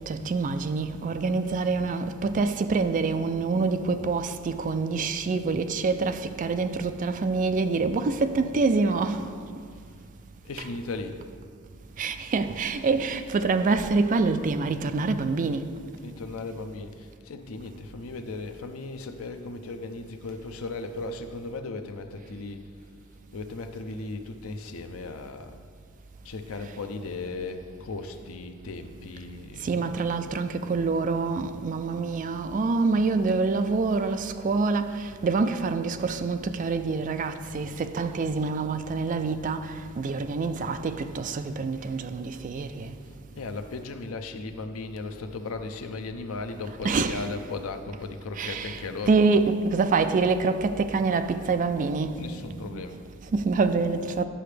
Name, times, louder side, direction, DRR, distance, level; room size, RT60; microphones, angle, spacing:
voice 1, 0.1-9.2 12.0-15.7 29.6-42.9 46.8-47.2 48.4-54.2, right 4 dB, 40° right, 0.3 m, -26 dB
voice 2, 10.4-11.2 16.0-22.7 23.3-25.6 26.2-29.8 43.4-49.2 52.2-53.1, left 3 dB, 80° left, 0.6 m, -37 dB
9.9 x 6.7 x 3.3 m
head